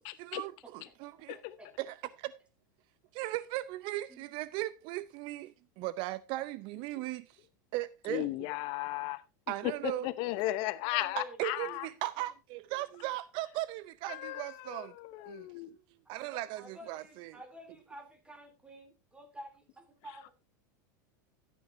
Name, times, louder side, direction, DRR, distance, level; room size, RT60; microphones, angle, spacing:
voice 1, 0.2-1.4 1.8-2.3 3.1-7.4 7.7-8.3 9.5-10.1 11.2-14.9 15.3-15.5 16.1-17.4, right 16 dB, 50° right, 0.6 m, -38 dB
voice 2, 0.8-1.7 4.1-4.3 6.7-7.1 8.8-9.1 10.8-11.9 16.0-20.3, equal, 10° right, 3.1 m, -51 dB
voice 3, 8.1-9.2 9.6-11.9 14.1-15.7, left 17 dB, 55° left, 0.8 m, -35 dB
14.0 x 9.5 x 2.7 m
supercardioid pair, 120°, 10 cm